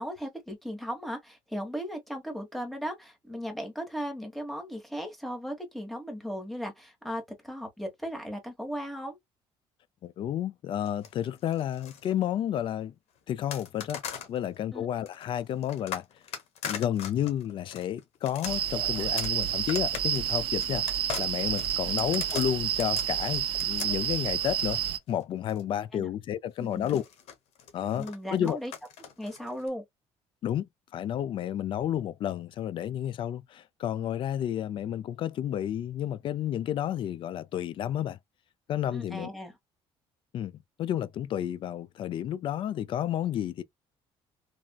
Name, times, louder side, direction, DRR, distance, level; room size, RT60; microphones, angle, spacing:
voice 1, 0.0-9.2 14.7-14.9 21.9-22.1 25.9-26.1 26.6-27.0 28.0-28.7 29.2-29.8 38.9-39.5, equal, ahead, 1.2 m, -37 dB
voice 2, 10.0-12.9 13.3-14.0 14.3-16.1 16.6-24.8 25.1-27.0 27.7-28.6 30.4-38.2 38.7-39.3 40.3-43.6, left 10 dB, 50° left, 0.3 m, -31 dB
sound 1, 10.9-12.1 13.5-14.4 15.1-25.6 26.7-29.7, left 8 dB, 75° left, 1.0 m, -41 dB
sound 2, 18.4-25.0, right 10 dB, 55° right, 0.5 m, -29 dB
3.4 x 2.4 x 2.2 m
cardioid pair, 120°, 11 cm